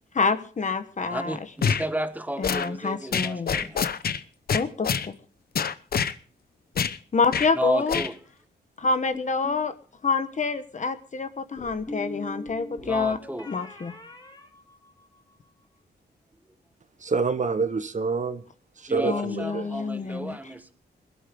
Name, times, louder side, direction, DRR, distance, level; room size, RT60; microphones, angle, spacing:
voice 1, 0.1-1.4 2.4-3.7 4.5-5.1 7.1-8.0 8.8-9.7 10.0-13.2 13.5-14.0 19.0-20.4, left 4 dB, 45° left, 1.3 m, -27 dB
voice 2, 1.1-3.8 7.5-8.1 12.8-13.5 18.9-20.7, equal, 10° right, 1.5 m, -32 dB
sound 1, 1.6-1.8 2.4-2.7 3.1-4.2 4.5-5.1 5.5-6.1 6.8-7.0 7.3-7.5 7.9-8.1, left 7 dB, 60° left, 0.9 m, -26 dB
sound 2, 8.8-9.7 11.6-15.3, left 1 dB, 25° left, 4.9 m, -41 dB
voice 3, 17.0-18.4 18.8-19.7, right 4 dB, 45° right, 1.3 m, -27 dB
21.0 x 12.5 x 3.8 m
cardioid pair, 100°, 18 cm